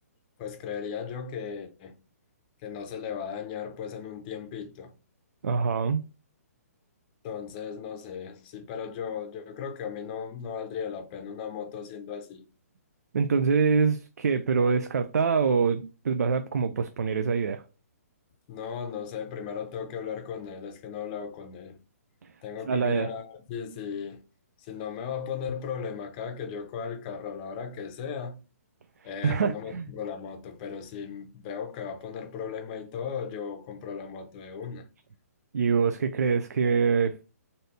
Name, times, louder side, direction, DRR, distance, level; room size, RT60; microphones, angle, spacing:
voice 1, 0.4-2.0 2.6-5.0 7.2-12.5 18.5-21.8 22.4-24.2 24.6-28.4 29.0-34.9, left 7 dB, 30° left, 0.6 m, -36 dB
voice 2, 5.4-6.0 13.1-17.6 22.7-23.1 29.2-29.9 35.5-37.1, right 5 dB, 80° right, 0.3 m, -25 dB
2.7 x 2.6 x 3.3 m
hypercardioid pair, 140°, 9 cm